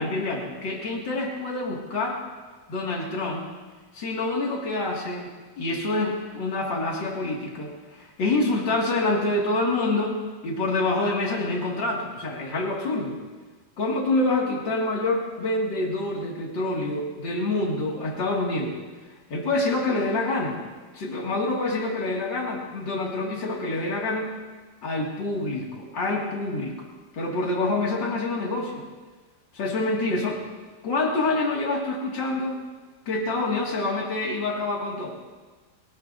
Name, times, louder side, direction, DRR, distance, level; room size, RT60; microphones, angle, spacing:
voice 1, 0.0-2.2 2.7-3.5 3.9-13.2 13.8-18.8 19.3-20.6 20.9-24.3 24.8-26.8 27.1-28.8 29.5-30.4 30.8-32.6 33.1-35.1, left 2 dB, 70° left, -2 dB, 2.9 m, -27 dB
28.5 x 17.0 x 2.6 m, 1.4 s
omnidirectional pair, 2.1 m